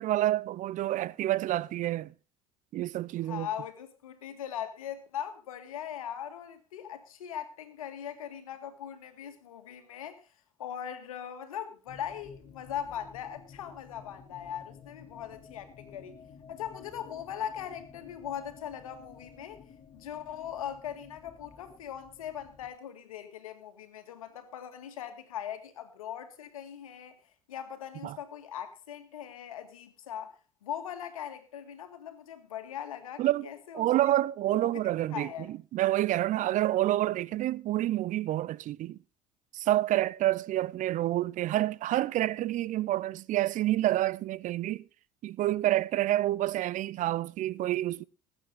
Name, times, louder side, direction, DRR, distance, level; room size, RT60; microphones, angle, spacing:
voice 1, 0.0-2.1 2.7-3.5 28.0-28.2 33.2-33.5 33.7-39.0 39.5-44.8 45.2-48.0, right 14 dB, 45° right, 0.5 m, -28 dB
voice 2, 3.2-10.2 10.6-16.1 16.5-19.6 19.9-27.2 27.5-30.3 30.6-33.9 34.5-34.8 35.1-35.5, left 9 dB, 80° left, 1.9 m, -40 dB
sound 1, 11.9-22.7, left 6 dB, 35° left, 2.0 m, -53 dB
19.5 x 8.9 x 3.8 m
hypercardioid pair, 65°, 18 cm